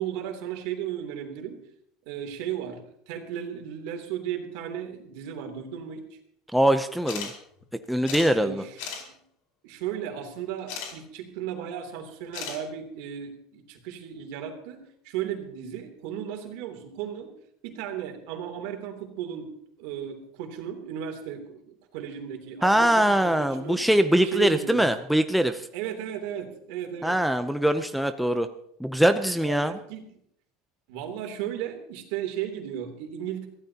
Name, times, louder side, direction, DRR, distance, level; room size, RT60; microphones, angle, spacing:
voice 1, 0.0-1.6 2.1-6.0 8.3-8.9 9.6-17.3 17.6-23.9 24.2-24.9 25.7-27.2 29.4-30.0 30.9-33.5, right 10 dB, 70° right, 4 dB, 3.0 m, -35 dB
voice 2, 6.5-7.3 7.9-8.6 22.6-25.6 27.0-28.5 28.8-29.8, right 1 dB, ahead, 7 dB, 0.6 m, -22 dB
sound 1, 7.1-7.3 7.6-7.7 8.0-8.3 8.8-9.0 10.7-10.9 12.3-12.6, left 6 dB, 70° left, 4.5 m, -35 dB
23.0 x 15.5 x 2.9 m, 0.71 s
cardioid pair, 155°, 0 cm